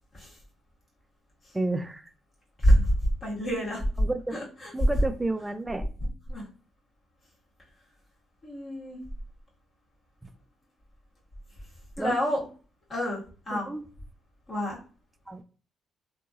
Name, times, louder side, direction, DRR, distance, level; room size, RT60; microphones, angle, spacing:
voice 1, 1.5-2.1 4.0-4.4 4.7-5.9 10.2-10.3 12.0-12.2 13.5-13.8 15.3-15.4, right 2 dB, 15° right, 9 dB, 0.3 m, -31 dB
voice 2, 2.6-3.8 4.3-4.7 6.3-6.5 8.4-9.0 12.0-12.4 12.9-13.7 14.5-14.8, equal, 40° left, -6 dB, 1.5 m, -27 dB
2.8 x 2.7 x 2.4 m, 0.37 s
cardioid pair, 90°, 0 cm